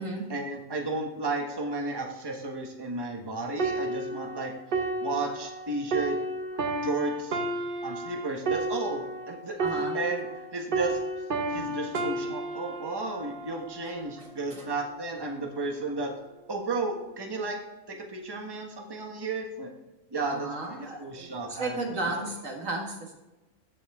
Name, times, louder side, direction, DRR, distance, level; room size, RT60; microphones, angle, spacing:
voice 1, 0.3-4.5 5.0-6.2 6.8-7.4 7.8-10.3 10.5-11.0 11.5-16.1 16.5-17.6 17.9-19.7 20.1-21.8, right 3 dB, 20° right, 1 dB, 1.2 m, -33 dB
sound 1, 3.6-10.5 10.7-14.3 14.9-15.2, right 2 dB, 45° right, 0.9 m, -32 dB
voice 2, 9.6-10.0 11.5-11.6 11.9-12.0 14.2-14.7 20.3-23.1, right 2 dB, 70° right, 0 dB, 2.2 m, -34 dB
14.5 x 5.7 x 3.6 m, 1.1 s
omnidirectional pair, 1.4 m